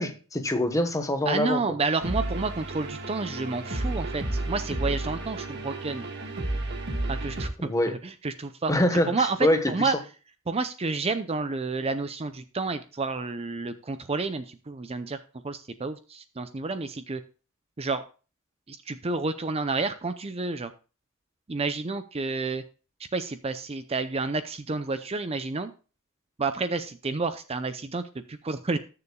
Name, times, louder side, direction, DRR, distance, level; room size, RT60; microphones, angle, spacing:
voice 1, 0.0-1.6 7.6-7.9 8.7-9.9, left 1 dB, 15° left, 7 dB, 1.2 m, -25 dB
voice 2, 1.3-6.1 7.1-7.7 8.0-8.7 9.1-9.9 10.5-15.2 15.4-17.2 17.8-18.0 18.7-20.7 21.5-22.6 23.1-25.7 26.4-28.8, right 3 dB, 30° right, 10 dB, 0.6 m, -30 dB
sound 1, 2.0-7.5, right 1 dB, 55° right, 1.7 m, -32 dB
19.5 x 6.9 x 2.3 m, 0.34 s
head